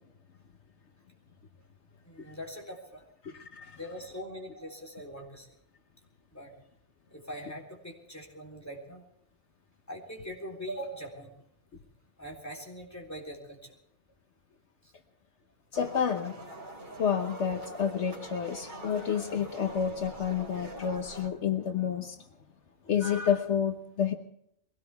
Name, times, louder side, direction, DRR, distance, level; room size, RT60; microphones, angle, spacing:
voice 1, 2.0-3.0 3.8-5.5 6.3-6.5 7.1-9.0 9.9-11.3 12.2-13.8, equal, 15° left, 0 dB, 3.7 m, -42 dB
voice 2, 15.7-16.3 17.0-22.1 22.9-24.1, left 8 dB, 75° left, 6 dB, 1.3 m, -29 dB
sound 1, 15.7-21.3, right 2 dB, 50° right, 3.2 m, -44 dB
22.5 x 17.5 x 3.5 m, 0.73 s
omnidirectional pair, 1.2 m